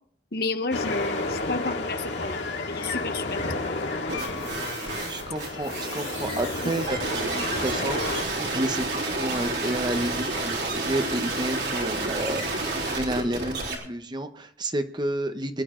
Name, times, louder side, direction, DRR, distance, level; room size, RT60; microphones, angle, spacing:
voice 1, 0.3-3.6, left 3 dB, 60° left, 8 dB, 1.2 m, -31 dB
sound 1, 0.7-8.2, left 2 dB, 85° left, 2.5 m, -31 dB
sound 2, 4.1-13.7, right 2 dB, 70° right, 3.9 m, -30 dB
voice 2, 5.1-15.6, right 1 dB, 25° right, 8 dB, 0.9 m, -31 dB
23.0 x 11.0 x 3.8 m, 0.62 s
head